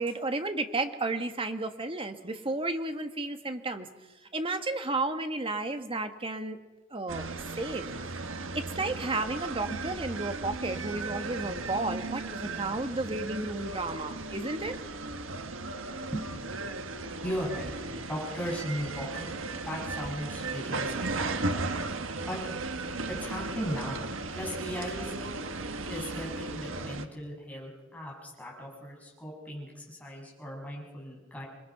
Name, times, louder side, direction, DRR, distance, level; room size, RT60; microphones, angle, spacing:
voice 1, 0.0-3.9 4.3-6.6 6.9-7.2 7.6-7.9 8.5-14.8, right 2 dB, 25° right, 7 dB, 1.6 m, -32 dB
sound 1, 7.1-27.1, right 3 dB, 90° right, 1.5 m, -36 dB
voice 2, 16.9-17.7 18.1-19.3 19.6-21.6 22.3-22.4 23.1-24.0 24.3-25.1 25.9-31.4, equal, 10° left, -3 dB, 7.2 m, -37 dB
27.0 x 22.0 x 6.0 m, 1.2 s
head